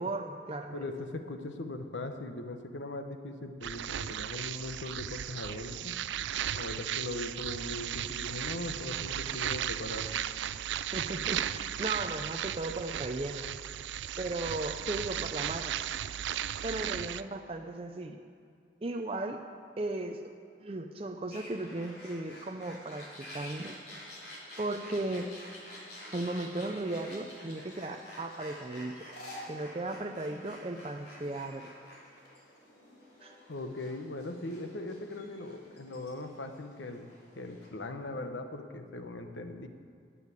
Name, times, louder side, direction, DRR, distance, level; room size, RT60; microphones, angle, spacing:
voice 1, 0.0-0.8 10.9-13.5 14.2-15.7 16.6-18.2 18.8-19.4 19.8-20.3 20.6-23.8 24.6-25.3 26.1-29.1 29.5-31.7 33.2-33.3, right 2 dB, 30° right, 4 dB, 0.5 m, -36 dB
voice 2, 0.7-6.0 6.5-10.1 33.5-37.1 37.3-39.7, left 2 dB, 90° left, 7 dB, 1.1 m, -39 dB
sound 1, 3.6-17.2, right 10 dB, 85° right, 0.4 m, -36 dB
sound 2, 21.3-37.7, left 1 dB, 65° left, 3.3 m, -49 dB
11.0 x 8.3 x 8.4 m, 2.3 s
head